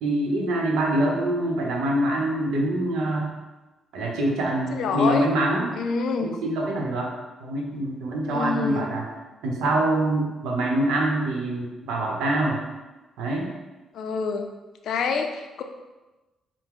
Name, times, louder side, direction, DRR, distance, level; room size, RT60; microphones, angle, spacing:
voice 1, 0.0-3.3 3.9-5.7 6.2-7.1 7.4-9.0 9.4-12.6 13.2-13.5, right 1 dB, 90° right, 0 dB, 0.7 m, -25 dB
voice 2, 4.7-5.3 5.8-6.4 8.3-8.9 13.9-14.5 14.8-15.6, left 4 dB, 70° left, 5 dB, 0.4 m, -27 dB
4.7 x 2.0 x 3.6 m, 1.1 s
cardioid pair, 90°, 0 cm